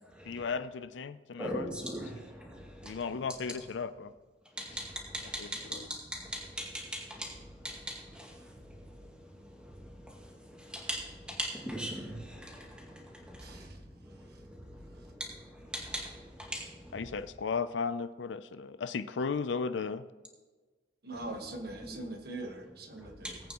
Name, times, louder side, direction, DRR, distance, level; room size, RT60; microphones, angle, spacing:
voice 1, 0.2-1.7 2.8-4.1 4.7-4.8 5.4-5.9 16.9-20.0, left 5 dB, 80° left, 13 dB, 0.5 m, -35 dB
voice 2, 1.4-3.0 4.6-7.4 7.6-8.5 10.0-10.1 10.5-13.6 15.3-16.9 21.8-22.0 23.0-23.3, equal, 5° right, -1 dB, 2.2 m, -40 dB
voice 3, 21.0-23.4, right 2 dB, 60° right, 4 dB, 1.4 m, -42 dB
19.0 x 8.6 x 3.0 m, 1.3 s
head